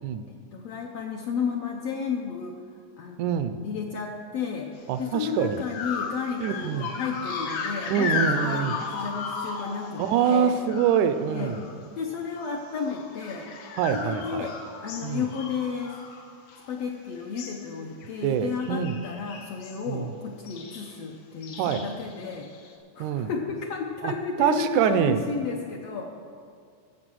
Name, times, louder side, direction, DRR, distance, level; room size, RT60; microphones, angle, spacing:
voice 1, 0.3-2.5 3.0-4.7 5.0-10.0 10.3-10.5 11.3-11.5 12.0-13.5 13.9-14.6 14.8-15.9 16.7-22.5 22.9-26.1, left 6 dB, 70° left, 1 dB, 1.5 m, -32 dB
voice 2, 3.2-3.6 4.9-5.6 6.4-6.9 7.9-8.8 10.0-11.6 13.8-14.5 15.0-15.3 18.2-19.0 19.9-20.1 21.6-21.9 23.0-23.3 24.0-25.3, right 8 dB, 80° right, 11 dB, 1.9 m, -25 dB
sound 1, 5.0-5.2 5.7-11.8 12.1-16.9 17.2-17.7 18.0-18.3 18.6-19.8 20.5-21.0 21.4-22.7, left 5 dB, 90° left, 2.8 m, -35 dB
15.0 x 7.3 x 6.2 m, 2.2 s
omnidirectional pair, 3.7 m